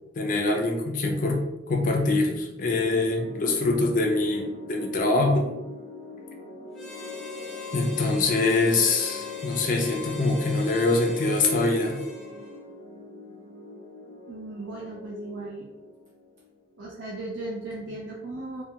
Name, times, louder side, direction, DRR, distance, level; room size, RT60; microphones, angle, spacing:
voice 1, 0.2-1.4 1.7-5.5 7.7-12.0, left 2 dB, 45° left, 2 dB, 0.4 m, -24 dB
sound 1, 2.6-17.0, left 1 dB, 35° right, 0.8 m, -43 dB
Harmonica, 6.7-12.7, left 5 dB, ahead, 0.7 m, -39 dB
voice 2, 14.3-15.7 16.8-18.6, right 2 dB, 75° right, -4 dB, 0.4 m, -36 dB
2.2 x 2.2 x 2.8 m, 0.97 s
head